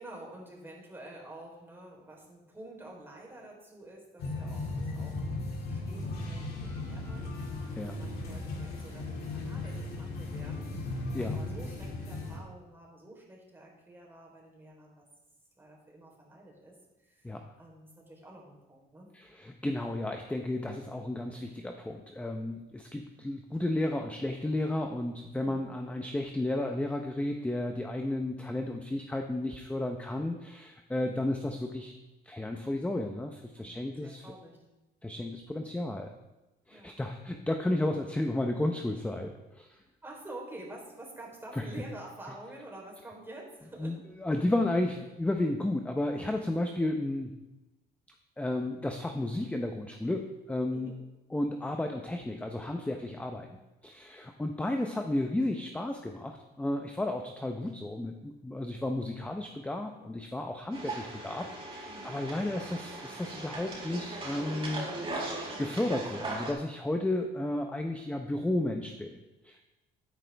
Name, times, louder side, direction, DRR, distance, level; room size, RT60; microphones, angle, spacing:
voice 1, 0.0-5.2 5.7-10.7 11.2-15.1 15.6-17.3 17.6-19.1 25.4-25.6 33.6-34.6 36.7-37.0 39.7-44.0 50.7-51.0 61.9-62.2, right 1 dB, 15° right, -2 dB, 3.8 m, -49 dB
sound 1, 4.2-12.4, left 2 dB, 70° left, 2.5 m, -36 dB
voice 2, 19.1-31.9 32.2-34.3 35.0-36.1 36.7-39.8 41.6-41.7 43.8-47.3 48.4-50.9 51.3-69.2 69.4-69.6, left 1 dB, 10° left, 4 dB, 0.8 m, -33 dB
sound 2, 60.7-66.5, right 2 dB, 30° right, 4.3 m, -39 dB
12.5 x 9.4 x 3.5 m, 1.0 s
cardioid pair, 110°, 17 cm